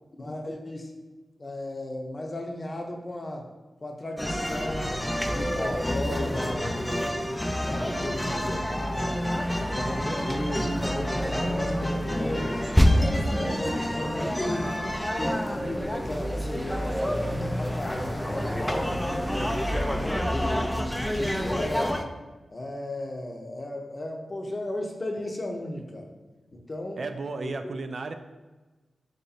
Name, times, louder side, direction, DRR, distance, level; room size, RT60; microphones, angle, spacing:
voice 1, 0.2-0.9 1.4-3.5 3.8-5.0 5.3-9.3 9.7-10.8 11.3-12.6 13.1-14.7 15.2-19.6 20.3-22.0 22.5-26.1 26.5-27.0 27.4-27.7, left 1 dB, 45° left, 2 dB, 0.7 m, -35 dB
sound 1, 4.2-22.0, equal, 10° left, 0.4 m, -27 dB
voice 2, 27.0-28.1, right 3 dB, 70° right, 7 dB, 0.3 m, -34 dB
3.1 x 2.8 x 4.0 m, 1.2 s
cardioid pair, 40°, 0 cm